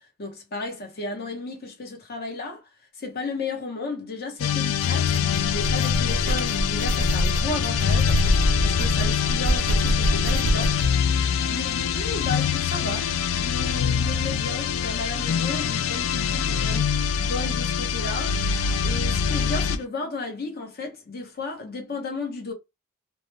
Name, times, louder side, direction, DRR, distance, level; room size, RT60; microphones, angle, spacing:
voice 1, 0.2-2.7 3.0-5.1 5.4-8.3 8.6-10.8 11.5-18.4 18.8-22.5, left 3 dB, 50° left, 0.9 m, -33 dB
sound 1, 4.4-19.8, left 7 dB, 65° left, 0.3 m, -24 dB
sound 2, 4.8-10.9, right 1 dB, 40° right, 0.4 m, -26 dB
2.3 x 2.1 x 3.1 m
head